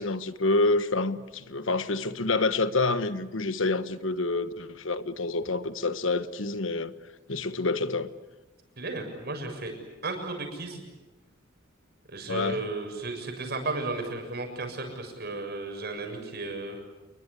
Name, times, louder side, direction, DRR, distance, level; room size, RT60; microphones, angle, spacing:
voice 1, 0.0-6.9 7.3-8.1 12.3-12.6, left 3 dB, 80° left, 1.3 m, -27 dB
voice 2, 8.8-9.7 10.0-10.8 12.1-16.8, right 2 dB, 55° right, 7.0 m, -34 dB
29.0 x 22.5 x 8.3 m
head